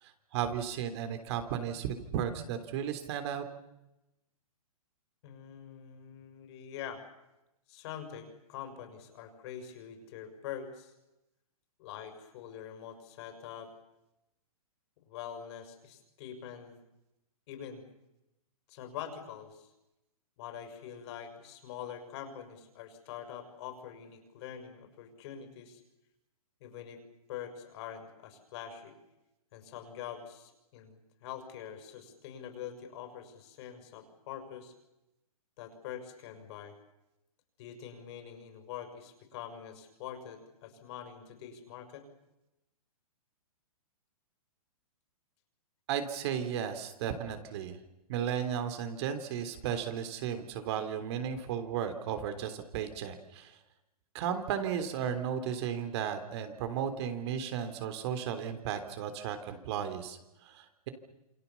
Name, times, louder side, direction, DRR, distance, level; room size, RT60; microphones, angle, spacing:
voice 1, 0.0-3.4 45.9-47.8 48.1-53.6 54.1-60.9, right 8 dB, 45° right, 8 dB, 3.4 m, -35 dB
voice 2, 5.2-7.0 7.7-10.9 11.8-13.7 15.1-16.8 17.5-17.8 18.7-19.7 20.4-25.8 26.6-27.0 27.3-29.0 29.5-34.7 35.6-36.7 37.6-42.0, left 9 dB, 45° left, 6 dB, 6.2 m, -44 dB
28.0 x 25.0 x 7.2 m, 0.94 s
hypercardioid pair, 140°, 19 cm